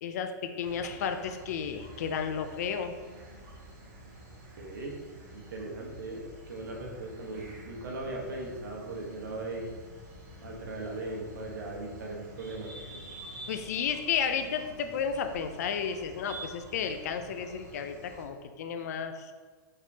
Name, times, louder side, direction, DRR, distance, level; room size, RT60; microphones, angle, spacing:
voice 1, 0.0-3.0 13.5-19.3, left 7 dB, 55° left, 7 dB, 0.4 m, -33 dB
sound 1, 0.6-18.2, right 1 dB, 55° right, 1.3 m, -48 dB
voice 2, 4.6-5.0 5.3-9.7 10.4-13.0, right 2 dB, 90° right, -1 dB, 1.2 m, -39 dB
5.0 x 3.5 x 2.8 m, 1.4 s
hypercardioid pair, 160°, 10 cm